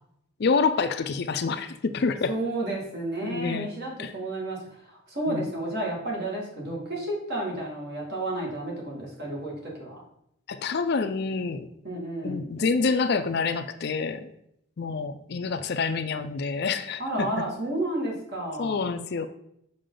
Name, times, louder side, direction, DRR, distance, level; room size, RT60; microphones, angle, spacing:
voice 1, 0.4-2.3 3.2-3.7 4.0-4.1 5.3-5.5 10.5-11.7 12.2-14.3 14.8-17.0 18.6-19.3, left 4 dB, 50° left, 10 dB, 0.4 m, -27 dB
voice 2, 2.3-10.0 11.8-12.4 17.0-18.9, right 1 dB, 50° right, -2 dB, 2.1 m, -31 dB
6.6 x 5.5 x 3.8 m, 0.75 s
head